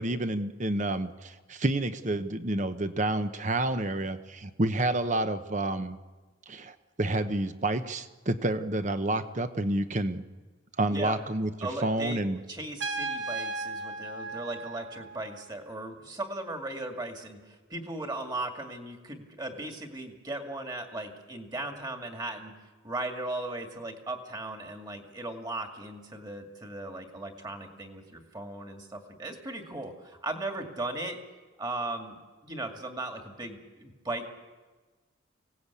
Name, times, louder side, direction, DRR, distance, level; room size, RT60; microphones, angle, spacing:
voice 1, 0.0-6.0 6.5-10.2 10.8-11.5 11.8-12.4, right 1 dB, 40° right, 10 dB, 1.0 m, -29 dB
voice 2, 11.6-12.2 12.5-22.5 22.8-31.2 31.6-32.1 32.4-34.3, right 2 dB, 20° right, 3 dB, 2.3 m, -37 dB
Trumpet, 12.8-15.4, right 3 dB, 65° right, 1.4 m, -36 dB
25.0 x 17.5 x 8.4 m, 1.3 s
head